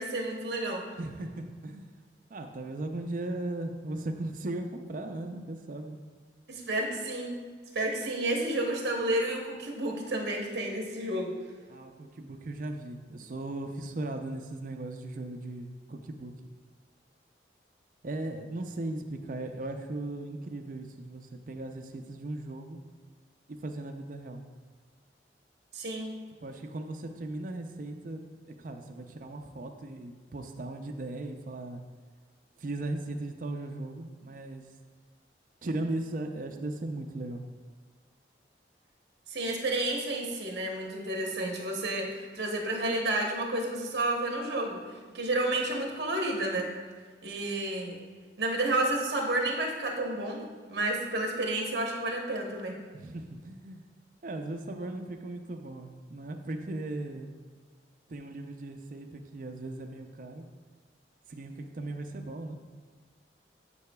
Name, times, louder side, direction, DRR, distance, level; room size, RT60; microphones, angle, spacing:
voice 1, 0.0-0.8 6.5-7.3 7.7-11.3 25.7-26.1 39.3-46.6 47.2-48.0 48.4-52.7, right 2 dB, 65° right, 0 dB, 1.0 m, -31 dB
voice 2, 1.0-1.9 2.3-6.0 11.7-16.5 18.0-22.8 23.5-24.4 26.4-31.8 32.6-34.7 35.6-37.4 52.9-53.9 54.2-57.4 58.1-60.5 61.3-62.6, right 2 dB, 45° right, 5 dB, 0.4 m, -37 dB
9.6 x 4.7 x 2.3 m, 1.5 s
head